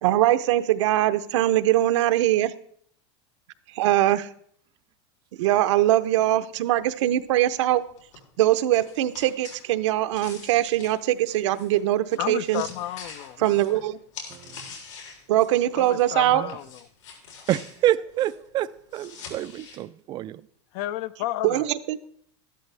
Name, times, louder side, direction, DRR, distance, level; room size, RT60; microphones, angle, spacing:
voice 1, 0.0-2.5 3.7-4.3 5.4-7.8 8.4-12.6 13.4-14.0 15.3-16.5 21.4-22.0, right 14 dB, 70° right, 0.8 m, -22 dB
sound 1, 6.5-16.2 16.5-19.8, left 5 dB, 85° left, 3.9 m, -45 dB
voice 2, 12.2-13.6 15.8-16.7 20.7-21.6, left 14 dB, 50° left, 0.5 m, -32 dB
voice 3, 17.5-20.4, right 13 dB, 30° right, 0.4 m, -27 dB
13.5 x 12.0 x 3.4 m
supercardioid pair, 145°, 16 cm